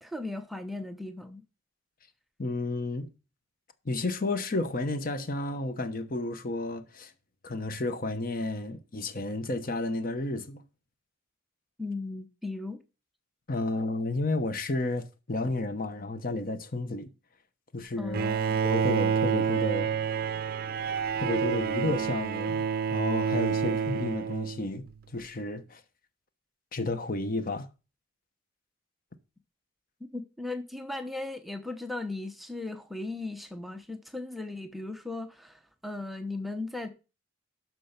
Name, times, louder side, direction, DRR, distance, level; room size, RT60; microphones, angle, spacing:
voice 1, 0.0-1.4 11.8-12.8 18.0-18.6 23.7-23.8 30.1-36.9, left 2 dB, ahead, 0.7 m, -37 dB
voice 2, 2.4-3.1 3.8-7.1 7.4-10.6 13.5-17.1 17.7-18.2 18.6-19.9 21.2-24.8 25.1-25.8 26.7-27.7, left 2 dB, 45° left, 0.9 m, -32 dB
Bowed string instrument, 18.1-24.9, right 6 dB, 50° right, 0.6 m, -28 dB
12.0 x 4.5 x 5.8 m
head